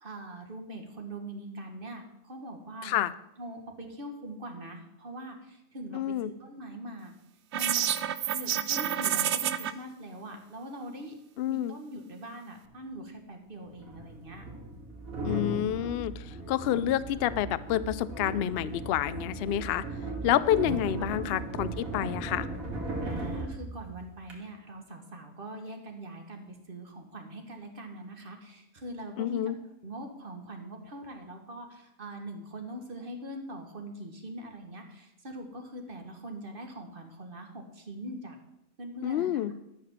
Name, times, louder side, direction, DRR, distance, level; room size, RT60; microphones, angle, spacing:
voice 1, 0.0-2.9 3.4-7.1 7.5-7.9 8.3-11.1 11.5-14.4 20.7-21.6 23.0-29.4 29.8-38.4 38.8-39.5, right 1 dB, 40° right, 4 dB, 1.6 m, -42 dB
voice 2, 5.9-6.3 11.4-11.8 15.2-19.8 20.2-22.5 29.2-29.6 39.0-39.5, left 12 dB, 65° left, 16 dB, 0.6 m, -28 dB
sound 1, 7.5-9.7, right 10 dB, 65° right, 0.8 m, -28 dB
sound 2, 12.7-12.8 13.7-24.3, right 2 dB, 85° right, 2.7 m, -37 dB
13.0 x 5.1 x 7.2 m, 0.85 s
omnidirectional pair, 1.4 m